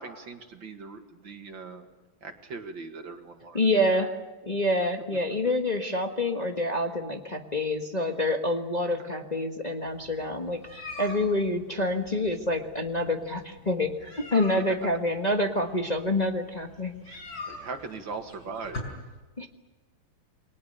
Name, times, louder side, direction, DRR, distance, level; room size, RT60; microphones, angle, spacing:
voice 1, 0.0-1.9 2.2-3.8 9.0-9.1 11.1-11.2 14.6-14.7 17.5-18.8, right 4 dB, 70° right, 5 dB, 2.7 m, -40 dB
voice 2, 3.5-4.1 4.5-17.2 19.4-19.5, left 1 dB, 25° left, 3 dB, 1.3 m, -27 dB
sound 1, 9.9-18.8, left 2 dB, 60° left, 6.2 m, -44 dB
29.0 x 22.5 x 6.7 m, 1.2 s
omnidirectional pair, 2.2 m